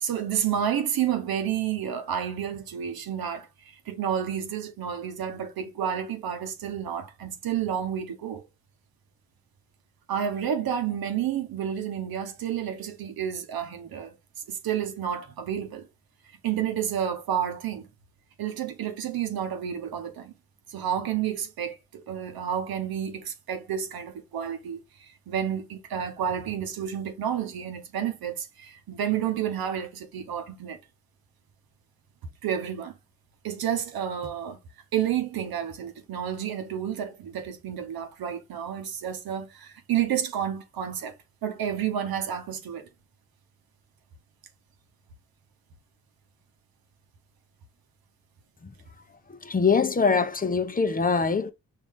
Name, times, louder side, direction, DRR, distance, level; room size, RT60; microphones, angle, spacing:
voice 1, 0.0-8.4 10.1-14.1 14.5-15.9 16.4-17.9 18.4-20.3 20.7-30.8 32.4-33.0 33.4-34.6 34.9-41.1 41.4-42.9, right 9 dB, 75° right, 0.9 m, -30 dB
voice 2, 49.3-51.5, left 5 dB, 25° left, 0.7 m, -23 dB
4.7 x 2.7 x 3.5 m
cardioid pair, 60°, 36 cm